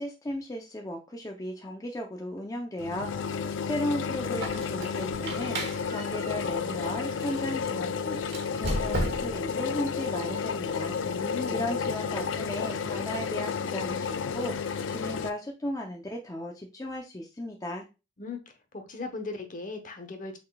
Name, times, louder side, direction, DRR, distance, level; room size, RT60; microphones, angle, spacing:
voice 1, 0.0-5.6 5.9-8.2 8.6-11.0 11.5-17.9, left 1 dB, 20° left, 0.6 m, -35 dB
sound 1, 2.8-15.3, left 6 dB, 80° left, 0.4 m, -32 dB
Squeak, 4.3-7.4 8.2-9.5, right 1 dB, 60° right, 1.6 m, -35 dB
voice 2, 11.0-11.7 18.2-18.4 18.7-20.4, left 3 dB, 45° left, 0.9 m, -37 dB
6.0 x 3.9 x 2.3 m
head